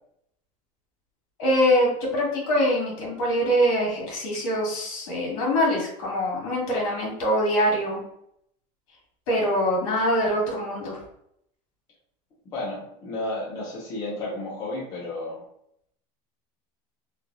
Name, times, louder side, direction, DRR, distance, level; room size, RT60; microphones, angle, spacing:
voice 1, 1.4-8.0 9.3-11.0, equal, 60° left, -3 dB, 1.4 m, -24 dB
voice 2, 12.5-15.4, left 2 dB, 20° left, -5 dB, 0.5 m, -32 dB
3.2 x 2.2 x 2.5 m, 0.73 s
cardioid pair, 180°, 17 cm